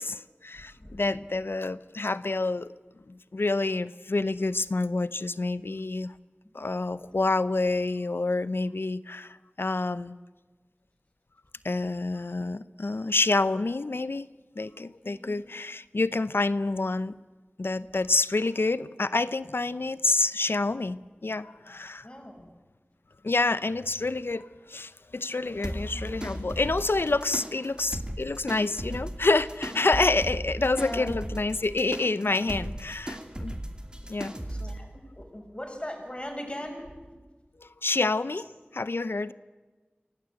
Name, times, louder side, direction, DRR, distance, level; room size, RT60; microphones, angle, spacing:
voice 1, 0.0-2.7 3.1-6.1 6.5-10.2 11.6-14.3 14.6-17.2 17.6-22.1 23.2-33.6 34.1-34.3 37.6-39.3, left 3 dB, 80° left, 16 dB, 0.7 m, -28 dB
voice 2, 15.0-15.4 22.0-22.5 29.8-30.1 30.6-31.1 32.3-32.6 34.5-36.9, equal, 30° left, 3 dB, 5.8 m, -39 dB
sound 1, 25.6-34.8, right 1 dB, 25° right, 2.5 m, -37 dB
25.0 x 17.5 x 7.9 m, 1.3 s
wide cardioid pair, 40°, 4 cm